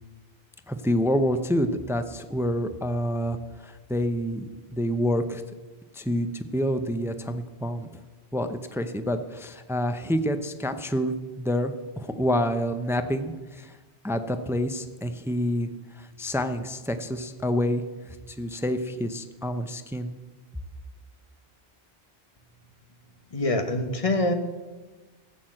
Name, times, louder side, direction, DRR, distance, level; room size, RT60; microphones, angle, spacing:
voice 1, 0.7-4.4 4.7-5.4 5.9-7.9 8.3-13.7 14.0-15.7 16.0-20.1, equal, 5° right, 9 dB, 0.5 m, -28 dB
voice 2, 23.3-24.3, left 2 dB, 35° left, 7 dB, 1.2 m, -25 dB
14.5 x 8.0 x 7.7 m, 1.2 s
omnidirectional pair, 1.1 m